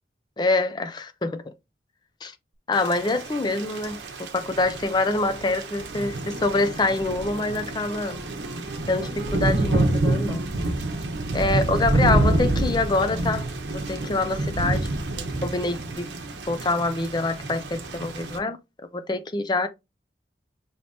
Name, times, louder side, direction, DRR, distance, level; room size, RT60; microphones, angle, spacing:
voice 1, 0.4-1.4 2.2-2.3 2.7-8.2 8.9-10.4 11.3-13.5 13.9-14.9 15.2-16.1 16.5-18.6 18.9-19.7, left 2 dB, 25° left, 0.4 m, -25 dB
Thunder / Rain, 2.7-18.4, right 2 dB, 80° right, 0.8 m, -27 dB
Wind instrument woodwind instrument, 5.3-13.7, equal, 55° right, 0.9 m, -45 dB
4.8 x 2.9 x 2.7 m
head